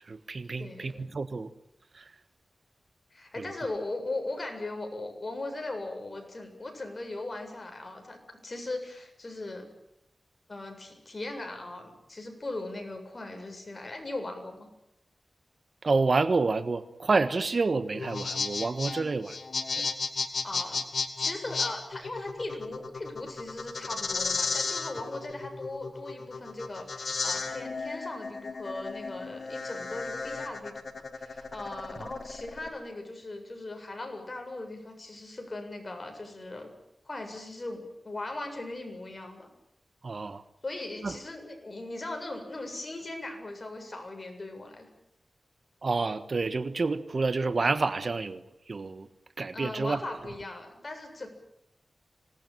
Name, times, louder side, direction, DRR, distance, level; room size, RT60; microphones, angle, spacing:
voice 1, 0.1-1.5 1.9-2.1 3.4-3.5 15.8-19.4 19.8-19.9 40.0-40.4 41.0-41.2 45.8-49.1 49.4-50.0, right 3 dB, 55° right, 12 dB, 1.5 m, -29 dB
voice 2, 0.6-1.0 3.1-9.7 10.5-14.7 20.4-20.8 21.2-36.7 37.0-39.5 40.6-44.9 49.5-51.3, left 2 dB, 40° left, 4 dB, 7.5 m, -39 dB
sound 1, 17.9-32.7, left 4 dB, 65° left, 2.6 m, -34 dB
26.0 x 19.5 x 9.3 m, 0.79 s
wide cardioid pair, 80°, 0 cm